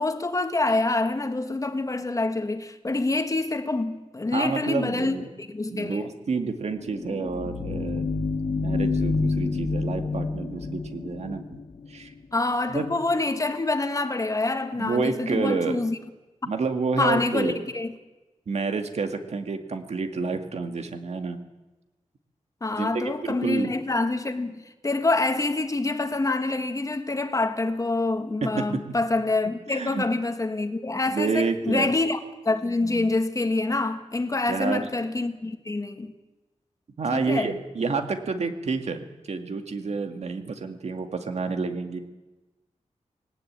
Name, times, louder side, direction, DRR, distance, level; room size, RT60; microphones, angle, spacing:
voice 1, 0.0-5.2 5.5-6.1 12.3-16.0 17.0-17.9 22.6-32.2 32.4-36.1 37.1-37.5, left 2 dB, 25° left, 1.5 m, -26 dB
voice 2, 4.3-5.3 5.7-8.1 8.5-11.6 11.9-12.1 12.7-12.9 14.8-15.8 16.5-17.6 18.5-21.4 22.8-23.7 28.4-28.8 29.7-30.1 31.1-31.9 32.8-33.3 34.5-34.9 37.0-42.0, right 4 dB, 60° right, 2.1 m, -29 dB
sound 1, 6.6-12.1, left 3 dB, 55° left, 1.7 m, -28 dB
20.0 x 18.5 x 8.8 m
wide cardioid pair, 140°, 12 cm